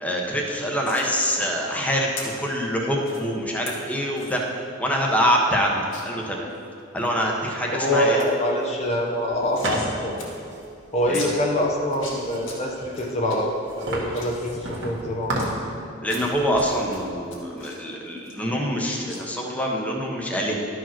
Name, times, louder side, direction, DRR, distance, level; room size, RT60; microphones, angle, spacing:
voice 1, 0.0-2.1 2.4-4.4 4.8-6.5 6.9-8.2 11.1-11.2 16.0-20.6, equal, 10° left, -1 dB, 1.0 m, -25 dB
sound 1, 0.8-1.1 2.2-2.3 3.0-3.2 3.7-3.8 4.2-4.4 4.8-4.9 5.1-5.2 5.9-6.0 6.5-7.1 7.5-7.9 8.2-8.3 8.6-9.9 10.2-10.3 10.6-10.7 11.1-11.3 11.8-12.6 12.9-13.4 13.8-15.5 16.0-16.6 16.9-18.8 19.1-19.2, left 4 dB, 70° left, 2.0 m, -39 dB
voice 2, 7.7-10.2 10.9-15.5, equal, 35° left, -1 dB, 0.9 m, -25 dB
sound 2, 8.8-15.8 16.2-17.1, right 1 dB, 65° right, 1.6 m, -35 dB
12.0 x 5.0 x 5.9 m, 2.6 s
head